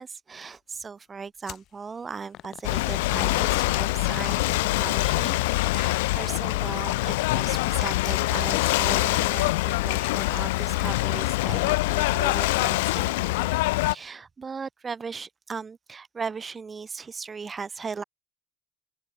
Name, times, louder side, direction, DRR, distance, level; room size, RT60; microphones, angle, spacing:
voice 1, 0.0-13.6 13.9-18.0, right 5 dB, 30° right, 7.0 m, -37 dB
sound 1, 1.5-1.7 2.3-6.0 7.6-7.9 8.3-8.4 9.2-9.3, left 12 dB, 60° left, 1.2 m, -43 dB
Ocean / Boat Water vehicle, 2.6-13.9, left 21 dB, 90° left, 0.6 m, -24 dB
open air
supercardioid pair, 80°, 0 cm